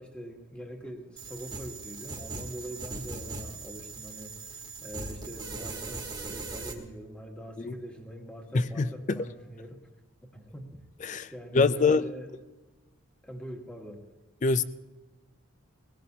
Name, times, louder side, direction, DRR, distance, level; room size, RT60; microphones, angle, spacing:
voice 1, 0.0-9.8 10.2-10.8 11.3-12.3 13.2-14.0, equal, 5° left, 1 dB, 1.5 m, -43 dB
sound 1, 1.2-6.7, right 3 dB, 20° right, 1.4 m, -39 dB
voice 2, 8.5-9.2 11.0-11.3 11.5-12.0 14.4-14.6, left 4 dB, 35° left, 15 dB, 0.4 m, -24 dB
20.0 x 16.5 x 2.8 m, 1.2 s
head